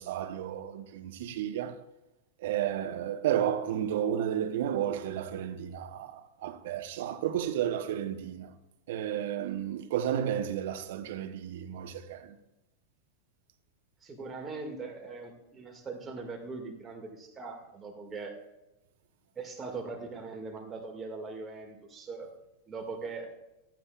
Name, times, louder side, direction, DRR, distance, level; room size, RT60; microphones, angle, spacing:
voice 1, 0.0-1.8 2.4-8.5 8.9-12.4, right 10 dB, 55° right, 0.9 m, -32 dB
voice 2, 14.0-18.3 19.4-22.3 22.7-23.3, right 4 dB, 20° right, 2.1 m, -40 dB
15.0 x 12.5 x 2.4 m
figure-of-eight pair, 90°, 0 cm